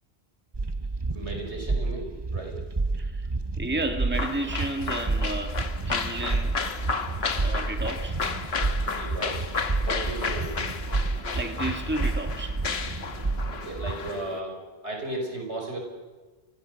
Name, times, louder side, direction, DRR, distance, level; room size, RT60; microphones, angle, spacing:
sound 1, 0.5-14.1, right 3 dB, 25° right, 0.7 m, -30 dB
voice 1, 1.1-2.6 8.9-9.5 9.8-10.6 13.5-15.8, right 2 dB, 80° right, 2 dB, 5.7 m, -35 dB
voice 2, 3.6-5.6 5.9-6.6 7.4-8.2 11.3-12.6, right 2 dB, 10° right, 5 dB, 2.0 m, -32 dB
sound 2, 4.1-14.4, left 5 dB, 65° left, 1.5 m, -33 dB
29.5 x 24.0 x 6.5 m, 1.3 s
omnidirectional pair, 1.1 m